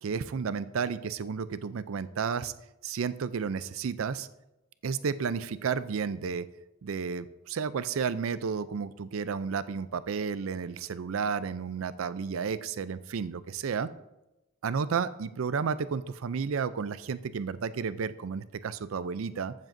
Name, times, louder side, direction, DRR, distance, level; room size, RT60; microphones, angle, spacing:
voice 1, 0.0-2.5 2.8-4.3 4.8-6.5 6.8-13.9 14.6-19.5, right 6 dB, 75° right, 15 dB, 0.4 m, -32 dB
15.0 x 7.5 x 2.6 m, 0.96 s
head